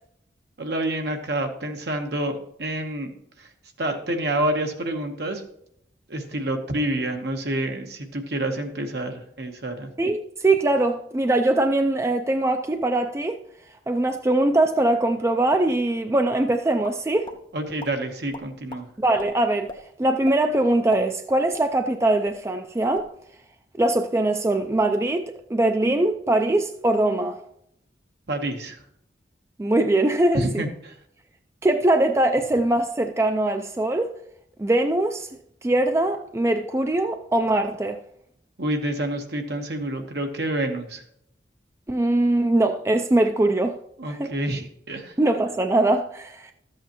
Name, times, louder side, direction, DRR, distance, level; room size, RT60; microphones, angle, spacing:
voice 1, 0.6-3.1 3.4-3.5 3.8-5.4 6.1-9.9 17.5-18.9 28.3-28.8 30.3-30.9 38.6-41.0 44.0-45.2, right 1 dB, 65° right, 1.1 m, -28 dB
voice 2, 10.0-13.4 13.9-17.3 19.0-19.7 20.0-23.1 23.8-27.4 29.6-30.6 31.6-34.1 34.6-35.3 35.6-38.0 41.9-43.8 44.1-44.3 45.2-46.5, right 2 dB, 15° right, 0.3 m, -22 dB
sound 1, 16.8-17.4 17.8-17.9 18.3-18.8 19.2-19.3 19.7-19.8 20.2-20.4 20.8-22.0 22.2-22.4 22.8-23.1, left 2 dB, 25° left, 0.6 m, -38 dB
13.0 x 8.0 x 3.0 m
head